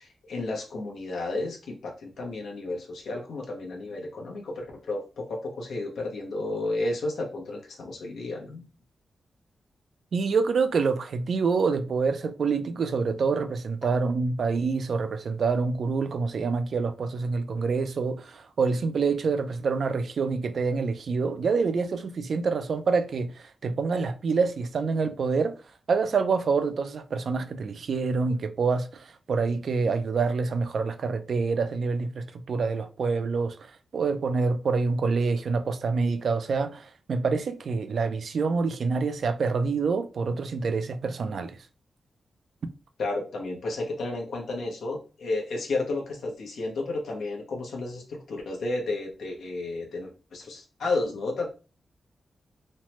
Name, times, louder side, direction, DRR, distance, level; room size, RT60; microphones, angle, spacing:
voice 1, 0.0-8.6 43.0-51.5, left 2 dB, 90° left, 0.8 m, -32 dB
voice 2, 10.1-25.5 25.9-41.6, right 4 dB, 65° right, 0.4 m, -26 dB
3.1 x 2.0 x 2.9 m
cardioid pair, 90°, 0 cm